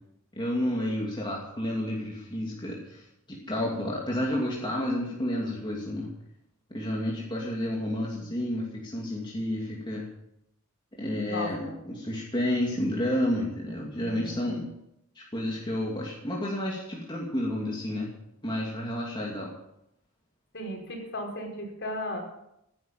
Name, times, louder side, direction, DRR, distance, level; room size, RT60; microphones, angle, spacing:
voice 1, 0.3-6.1 6.7-10.0 10.9-14.6 15.2-18.1 18.4-19.5, left 1 dB, 20° left, -3 dB, 2.7 m, -30 dB
voice 2, 11.3-11.8 14.0-14.7 20.5-22.2, left 1 dB, 55° left, 1 dB, 5.0 m, -36 dB
15.5 x 10.5 x 7.3 m, 0.81 s
head